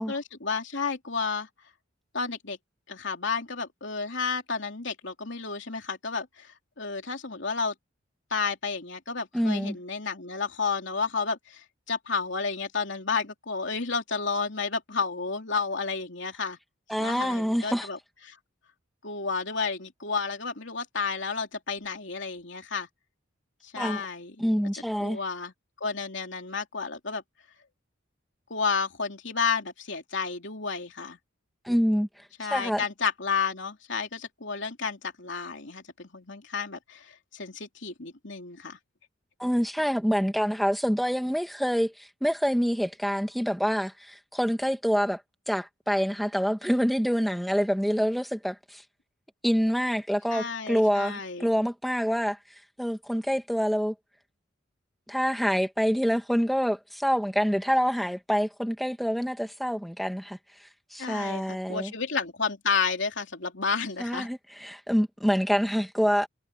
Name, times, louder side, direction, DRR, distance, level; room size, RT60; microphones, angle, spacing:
voice 1, 0.1-1.5 2.1-2.6 2.9-7.7 8.3-16.6 17.0-18.0 18.2-18.4 19.0-22.9 23.6-24.3 24.7-25.5 25.8-27.2 28.5-31.2 32.4-38.8 50.3-51.5 61.0-64.3, left 5 dB, 60° left, 3.4 m, -31 dB
voice 2, 9.3-9.8 16.9-17.9 23.8-24.0 24.4-25.2 31.6-32.1 32.5-32.8 39.4-45.2 45.5-48.8 49.4-52.4 52.8-53.9 55.1-60.4 60.9-61.9 64.0-66.3, equal, ahead, 2.0 m, -26 dB
head